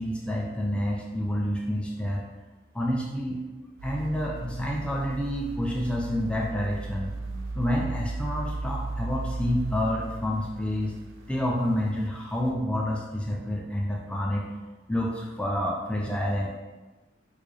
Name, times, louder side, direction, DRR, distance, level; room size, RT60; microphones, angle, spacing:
voice 1, 0.0-2.3 2.7-3.4 3.8-7.1 7.5-10.9 11.3-14.5 14.9-16.6, equal, 5° left, -2 dB, 0.3 m, -28 dB
sound 1, 3.8-12.0 12.5-12.6, right 3 dB, 80° right, 0.4 m, -36 dB
3.6 x 2.4 x 3.1 m, 1.2 s
head